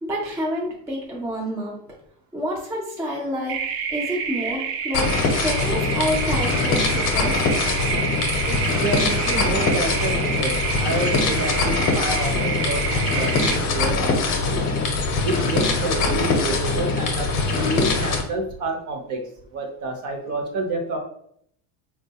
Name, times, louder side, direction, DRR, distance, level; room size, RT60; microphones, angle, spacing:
voice 1, 0.0-1.8 2.3-3.6 3.9-7.5, equal, 5° right, -4 dB, 0.4 m, -28 dB
sound 1, 3.5-13.6, right 6 dB, 80° right, 0.6 m, -28 dB
sound 2, 4.9-18.2, left 3 dB, 40° left, 0.7 m, -23 dB
voice 2, 8.4-14.7 15.2-19.2 19.5-21.0, right 2 dB, 45° right, 3 dB, 0.8 m, -29 dB
3.8 x 2.3 x 2.7 m, 0.68 s
cardioid pair, 145°, 43 cm